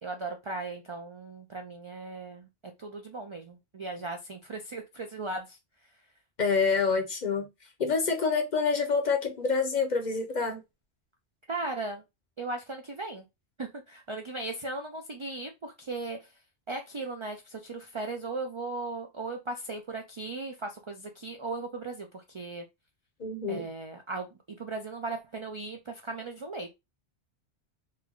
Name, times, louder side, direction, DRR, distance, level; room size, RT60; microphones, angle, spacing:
voice 1, 0.0-2.5 2.8-5.6 11.5-12.0 12.4-13.2 13.6-16.3 16.7-22.6 23.5-26.7, right 3 dB, 50° right, 0.3 m, -37 dB
voice 2, 6.4-7.5 7.8-10.6 23.2-23.7, left 5 dB, 50° left, 0.7 m, -27 dB
3.2 x 2.1 x 3.6 m
omnidirectional pair, 1.1 m